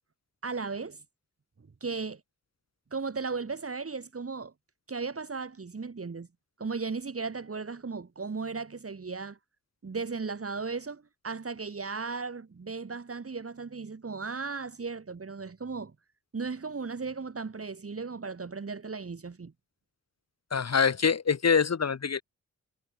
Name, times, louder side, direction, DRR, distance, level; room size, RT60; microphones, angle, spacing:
voice 1, 0.4-1.0 1.8-2.2 2.9-4.5 4.9-6.3 6.6-9.4 9.8-15.9 16.3-19.5, right 4 dB, 45° right, 2.6 m, -36 dB
voice 2, 20.5-22.2, left 6 dB, 55° left, 1.8 m, -25 dB
supercardioid pair, 45°, 32 cm